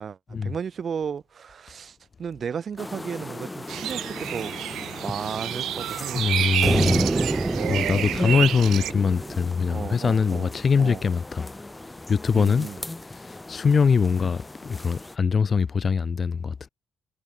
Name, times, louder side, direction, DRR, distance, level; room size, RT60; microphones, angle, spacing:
voice 1, 0.0-4.5 5.0-6.6 7.6-7.9 9.7-10.5 10.8-11.0 12.3-12.8, right 7 dB, 50° right, 2.7 m, -34 dB
sound 1, 2.8-15.2, left 2 dB, 15° left, 2.3 m, -39 dB
sound 2, 3.7-8.9, right 12 dB, 80° right, 1.3 m, -29 dB
voice 2, 6.1-7.0 7.7-11.5 12.1-12.7 13.5-16.7, left 5 dB, 40° left, 1.7 m, -22 dB
sound 3, 6.6-10.0, right 2 dB, 20° right, 2.8 m, -27 dB
cardioid pair, 90°, 0 cm